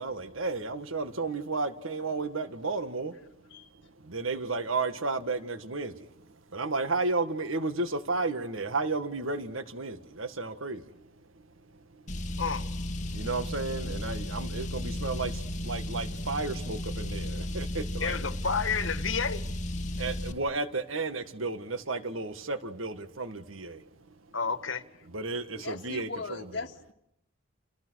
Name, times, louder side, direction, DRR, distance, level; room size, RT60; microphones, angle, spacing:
voice 1, 0.0-3.1 4.1-5.9 6.5-10.8 13.1-15.3 15.6-18.2 20.0-23.8 25.1-26.5, right 3 dB, 85° right, 1.8 m, -32 dB
Car, 12.1-20.3, left 1 dB, 35° left, 2.5 m, -34 dB
voice 2, 18.0-19.4 24.3-24.8, left 5 dB, 75° left, 1.9 m, -30 dB
voice 3, 25.5-26.9, left 3 dB, 55° left, 2.1 m, -39 dB
29.5 x 29.5 x 6.4 m
head